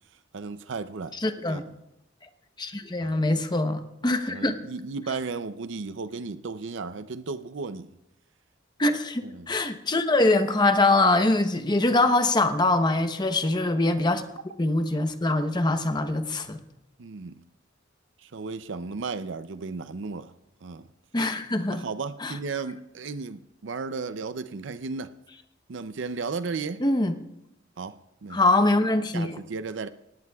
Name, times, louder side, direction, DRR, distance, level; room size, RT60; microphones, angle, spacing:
voice 1, 0.3-1.2 1.4-1.6 3.0-3.2 4.3-7.9 9.2-9.5 17.0-17.4 18.2-20.3 20.6-20.9 21.7-25.1 25.7-26.8 27.8-28.0 28.2-28.4 29.1-29.9, right 4 dB, 65° right, 0.5 m, -34 dB
voice 2, 1.2-1.6 2.6-4.5 8.8-14.2 14.6-16.6 21.1-21.8 22.2-22.3 26.8-27.1 28.3-29.4, left 2 dB, 20° left, 0.9 m, -23 dB
24.0 x 18.0 x 2.3 m
head